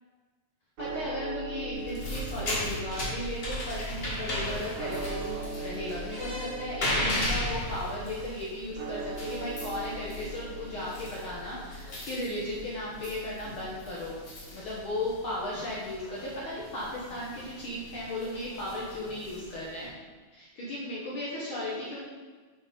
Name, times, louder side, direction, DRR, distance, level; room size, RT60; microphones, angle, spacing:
voice 1, 0.8-14.2 14.5-20.0 20.3-22.0, left 1 dB, 55° left, -6 dB, 1.5 m, -36 dB
sound 1, 0.8-15.0, right 2 dB, 80° right, 2.1 m, -41 dB
sound 2, 1.7-19.9, left 1 dB, 40° left, 0.8 m, -37 dB
7.2 x 4.7 x 5.0 m, 1.4 s
omnidirectional pair, 3.6 m